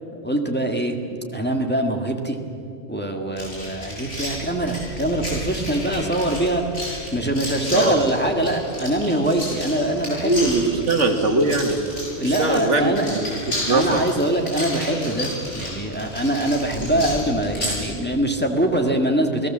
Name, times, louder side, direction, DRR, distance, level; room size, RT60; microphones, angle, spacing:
voice 1, 0.2-1.0 1.3-2.4 2.9-6.7 7.1-10.7 12.2-13.1 13.7-19.5, right 1 dB, 10° left, 2 dB, 1.9 m, -23 dB
sound 1, 3.4-17.9, left 1 dB, 80° left, 8.0 m, -32 dB
voice 2, 10.2-11.8 12.3-14.0 16.9-17.0, right 2 dB, 90° right, 4 dB, 2.3 m, -21 dB
29.0 x 18.5 x 7.5 m, 2.5 s
omnidirectional pair, 1.2 m